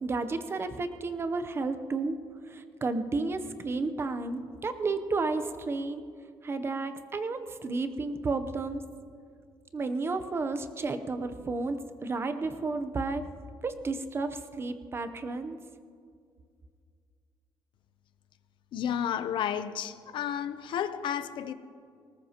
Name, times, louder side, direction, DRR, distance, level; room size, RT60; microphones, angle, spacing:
voice 1, 0.0-2.2 2.5-6.0 6.4-8.8 9.7-13.2 13.6-15.6, right 3 dB, 30° right, 0.7 m, -32 dB
voice 2, 18.7-21.5, left 9 dB, 70° left, 0.6 m, -32 dB
20.0 x 18.5 x 2.9 m
cardioid pair, 165°, 9 cm